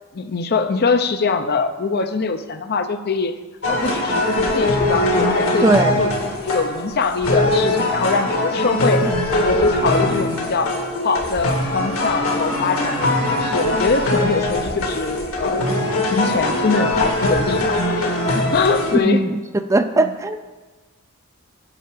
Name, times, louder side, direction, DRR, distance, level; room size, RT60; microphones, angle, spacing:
voice 1, 0.1-3.3 3.7-13.0 13.4-15.7 16.1-18.0 18.3-19.2 20.0-20.1, left 4 dB, 45° left, 9 dB, 0.6 m, -23 dB
sound 1, 3.6-19.0, left 1 dB, 70° left, 2.0 m, -21 dB
voice 2, 5.6-6.0 19.0-19.4 19.7-20.4, right 2 dB, 15° right, 9 dB, 0.4 m, -18 dB
9.9 x 5.8 x 7.7 m, 1.3 s
head